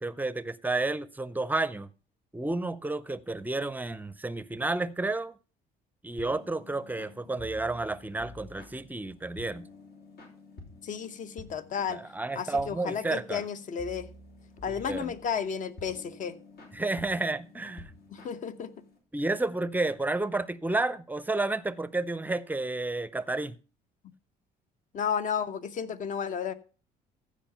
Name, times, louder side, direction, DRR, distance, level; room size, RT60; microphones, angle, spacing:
voice 1, 0.0-1.9 2.3-5.3 6.0-9.7 11.9-13.4 14.7-15.1 16.7-17.9 19.1-23.5, right 2 dB, 10° right, 0.6 m, -31 dB
sound 1, 6.2-19.0, left 2 dB, 70° left, 3.9 m, -50 dB
voice 2, 10.8-12.0 12.3-14.1 14.6-16.4 18.1-18.7 24.9-26.5, left 7 dB, 50° left, 1.0 m, -33 dB
14.5 x 5.0 x 5.6 m
cardioid pair, 110°, 17 cm